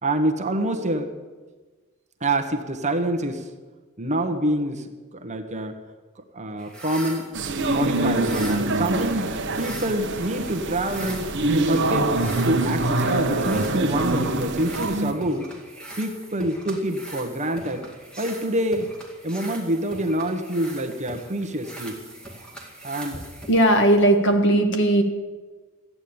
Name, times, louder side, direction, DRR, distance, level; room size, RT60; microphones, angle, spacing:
voice 1, 0.0-1.1 2.2-3.5 4.0-5.7 6.3-7.2 7.7-11.3 11.7-12.1 12.4-15.5 16.0-17.9 18.2-18.9 19.2-21.9 22.8-23.2, right 1 dB, 35° right, 5 dB, 1.2 m, -26 dB
sound 1, 6.6-24.2, right 2 dB, 5° left, 2.1 m, -42 dB
sound 2, 7.3-15.1, right 2 dB, 55° right, 1.1 m, -24 dB
voice 2, 23.5-25.0, right 1 dB, 60° left, 5 dB, 1.8 m, -17 dB
14.0 x 9.5 x 8.7 m, 1.3 s
head